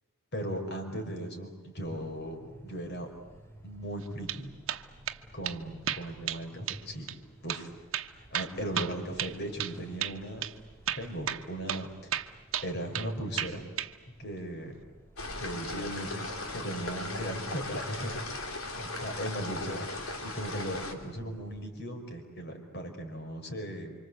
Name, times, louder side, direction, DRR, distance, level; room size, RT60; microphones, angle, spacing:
voice 1, 0.3-3.1 3.6-4.5 5.3-7.1 7.4-7.7 8.3-10.4 10.9-11.9 12.6-13.6 14.2-14.8 15.4-18.2 18.7-19.9 20.2-23.9, right 1 dB, 55° left, 4 dB, 5.1 m, -37 dB
sound 1, 1.8-21.6, right 1 dB, 10° left, 3.3 m, -56 dB
sound 2, 4.0-4.4 4.7-5.2 5.5-5.6 5.9-6.4 6.7-6.8 7.1-7.2 7.5-7.6 7.9-9.8 10.0-10.2 10.4-10.5 10.9-11.4 11.7-11.9 12.1-13.1 13.4-13.9, right 10 dB, 65° right, 1.2 m, -33 dB
sound 3, 15.2-20.9, left 2 dB, 85° left, 3.3 m, -37 dB
29.0 x 26.0 x 8.0 m, 1.2 s
head